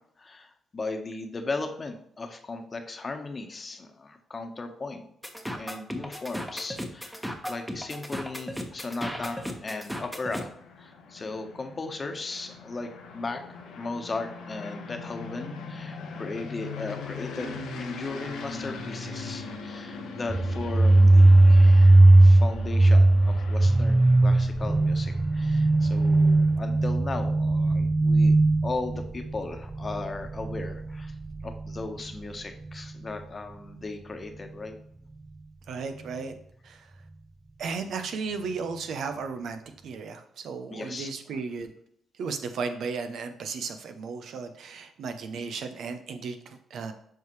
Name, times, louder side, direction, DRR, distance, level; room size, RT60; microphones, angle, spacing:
voice 1, 0.2-5.0 5.5-13.4 13.8-28.3 28.6-31.1 31.4-34.7 40.7-41.4 46.5-46.6, left 3 dB, 40° left, 5 dB, 1.2 m, -37 dB
sound 1, 5.2-10.4, equal, 5° right, 1.2 m, -36 dB
sound 2, 9.8-26.8, left 4 dB, 85° left, 1.2 m, -41 dB
sound 3, 20.3-31.8, right 2 dB, 20° right, 0.4 m, -19 dB
voice 2, 35.7-36.3 36.6-36.8 37.6-41.7 42.2-46.9, right 5 dB, 75° right, 7 dB, 0.8 m, -35 dB
7.7 x 4.9 x 3.2 m, 0.68 s
supercardioid pair, 65°, 0 cm